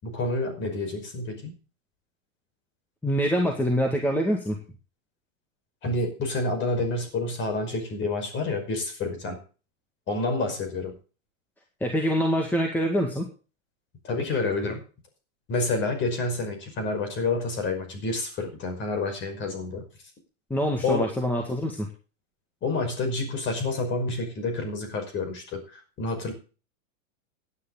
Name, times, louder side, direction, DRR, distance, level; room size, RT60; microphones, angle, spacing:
voice 1, 0.0-1.5 5.8-9.4 10.1-10.9 14.0-14.8 15.5-19.8 20.8-21.1 22.6-26.3, left 3 dB, 30° left, 6 dB, 5.3 m, -28 dB
voice 2, 3.0-4.6 11.8-13.3 20.5-21.9, equal, 5° left, 2 dB, 1.8 m, -25 dB
16.5 x 9.9 x 3.9 m, 0.35 s
supercardioid pair, 155°, 40 cm